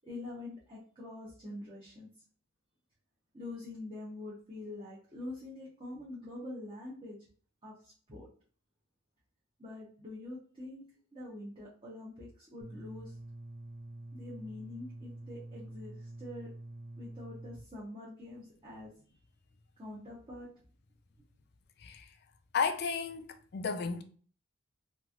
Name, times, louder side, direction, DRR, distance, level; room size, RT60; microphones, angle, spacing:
voice 1, 0.0-2.1 3.3-7.2 7.6-8.3 9.6-10.8 11.1-13.1 14.1-16.5 17.0-18.9 19.8-20.5, left 2 dB, 25° right, 0.7 m, -45 dB
sound 1, 12.6-17.6, right 1 dB, 45° right, 0.3 m, -47 dB
voice 2, 22.5-23.2 23.5-24.0, left 5 dB, 50° left, 0.3 m, -32 dB
3.0 x 2.5 x 2.3 m
head